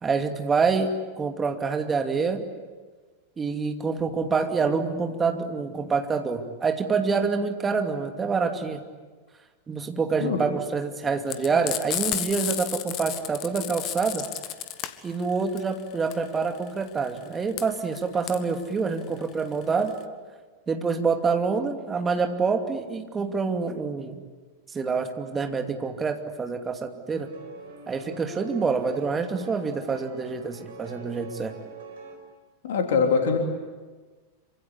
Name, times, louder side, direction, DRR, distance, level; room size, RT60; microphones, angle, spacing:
voice 1, 0.0-2.5 3.4-8.8 9.7-14.2 15.0-19.9 20.7-24.2 24.7-27.3 27.9-31.5, right 5 dB, 20° right, 5 dB, 2.5 m, -26 dB
Frying (food), 11.3-20.0, left 12 dB, 40° left, 1.7 m, -32 dB
sound 1, 27.1-32.2, right 3 dB, 60° right, 5.7 m, -44 dB
voice 2, 32.6-33.4, left 5 dB, 55° left, 4 dB, 3.2 m, -23 dB
27.5 x 25.5 x 8.5 m, 1.4 s
figure-of-eight pair, 90°, 0 cm